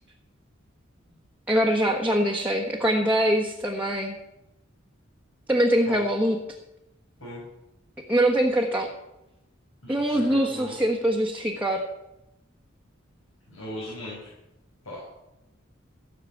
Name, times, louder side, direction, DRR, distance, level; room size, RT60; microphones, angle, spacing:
voice 1, 1.5-4.2 5.5-6.4 8.1-8.9 9.9-11.8, right 1 dB, 10° right, -1 dB, 1.4 m, -23 dB
voice 2, 9.8-10.7 13.5-14.3 14.8-15.0, left 1 dB, 70° left, -6 dB, 6.0 m, -38 dB
17.0 x 6.7 x 8.5 m, 0.92 s
head